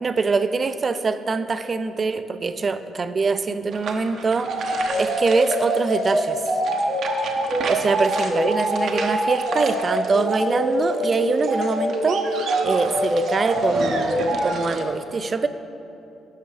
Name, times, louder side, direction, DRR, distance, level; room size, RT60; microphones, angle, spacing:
voice 1, 0.0-4.5 4.9-6.4 7.6-12.3 12.6-15.5, right 4 dB, 35° right, 11 dB, 0.5 m, -24 dB
sound 1, 3.7-14.8, right 4 dB, 65° right, 0.8 m, -34 dB
sound 2, 4.5-14.4, right 2 dB, 85° right, 2.2 m, -24 dB
11.5 x 5.9 x 4.8 m, 2.8 s
cardioid pair, 90°, 0 cm